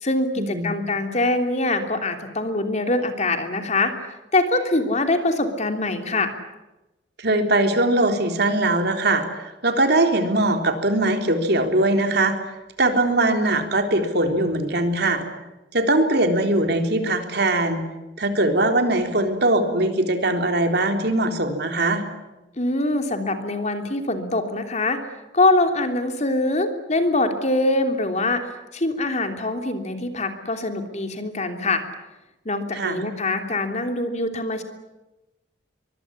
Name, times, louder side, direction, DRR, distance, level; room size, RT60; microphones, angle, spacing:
voice 1, 0.0-3.9 4.3-6.3 22.6-25.0 25.3-31.8 32.4-34.6, left 2 dB, 40° left, 6 dB, 3.2 m, -23 dB
voice 2, 7.2-12.4 12.8-15.2 15.7-17.8 18.2-22.0 32.7-33.0, right 2 dB, 60° right, 5 dB, 3.7 m, -21 dB
24.0 x 22.5 x 10.0 m, 0.99 s
head